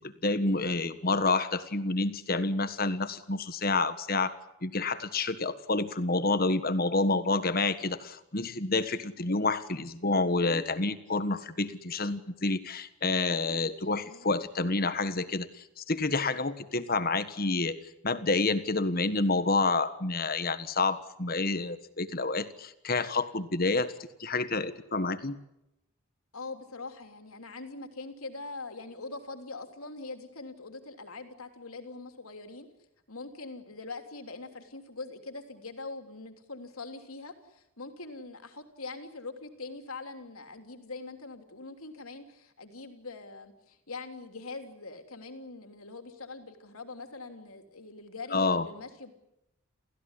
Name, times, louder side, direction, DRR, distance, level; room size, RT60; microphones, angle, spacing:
voice 1, 0.0-4.3 4.6-17.8 18.0-25.4 48.3-48.7, left 3 dB, 45° left, 11 dB, 1.5 m, -29 dB
voice 2, 13.9-14.3 26.3-32.7 33.1-49.1, left 3 dB, 85° left, 6 dB, 3.3 m, -43 dB
28.5 x 16.0 x 9.9 m, 0.87 s
head